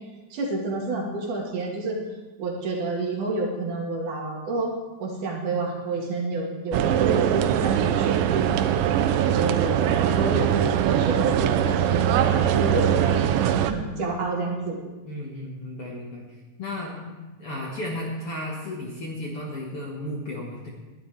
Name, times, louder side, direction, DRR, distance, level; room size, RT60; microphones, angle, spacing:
voice 1, 0.3-2.0 2.4-4.7 5.0-8.5 9.2-13.2 13.6-14.8, right 3 dB, 60° right, -1 dB, 3.1 m, -29 dB
sound 1, 6.7-13.7, right 10 dB, 80° right, 2.1 m, -22 dB
voice 2, 15.0-16.2 16.6-17.1 17.4-20.7, left 1 dB, 50° left, -3 dB, 2.0 m, -34 dB
21.0 x 12.0 x 3.4 m, 1.2 s
omnidirectional pair, 4.4 m